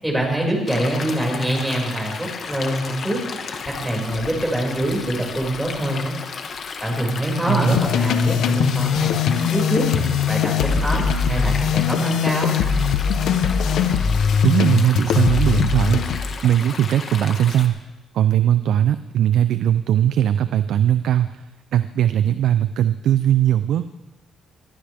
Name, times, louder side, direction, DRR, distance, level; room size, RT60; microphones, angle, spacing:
voice 1, 0.0-3.2 3.6-6.2 6.8-9.1 9.5-9.9 10.3-12.6, right 1 dB, 5° right, -1 dB, 6.2 m, -24 dB
Stream, 0.7-17.7, left 5 dB, 55° left, 1.7 m, -34 dB
voice 2, 7.5-7.8 14.4-16.0 16.4-17.8 18.1-21.4 21.7-23.9, right 11 dB, 75° right, 12 dB, 0.5 m, -19 dB
sound 1, 7.7-16.4, left 7 dB, 80° left, 1.0 m, -20 dB
23.0 x 15.0 x 3.6 m, 1.1 s
cardioid pair, 90°, 0 cm